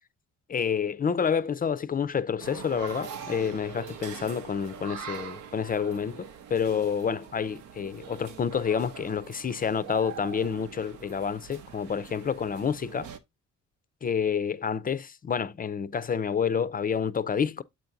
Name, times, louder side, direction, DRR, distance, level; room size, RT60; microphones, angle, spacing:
voice 1, 0.5-13.1 14.0-17.6, left 7 dB, 30° left, 0.4 m, -29 dB
sound 1, 2.4-13.2, right 8 dB, 85° right, 0.8 m, -43 dB
7.5 x 2.6 x 5.8 m
cardioid pair, 90°, 30 cm